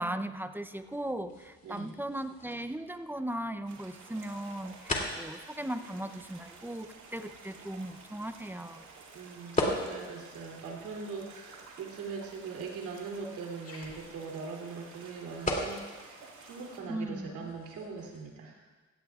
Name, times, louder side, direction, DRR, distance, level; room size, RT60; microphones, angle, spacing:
voice 1, 0.0-8.9 16.9-17.5, right 1 dB, 5° right, 9 dB, 0.6 m, -37 dB
sound 1, 0.6-18.3, left 1 dB, 25° left, 2.7 m, -41 dB
voice 2, 1.6-1.9 9.1-18.6, right 5 dB, 85° right, -1 dB, 2.9 m, -41 dB
sound 2, 3.7-16.8, right 4 dB, 70° right, 2.4 m, -52 dB
Growling, 13.5-18.2, left 4 dB, 50° left, 1.9 m, -58 dB
17.0 x 16.0 x 2.4 m, 1.3 s
cardioid pair, 90°, 30 cm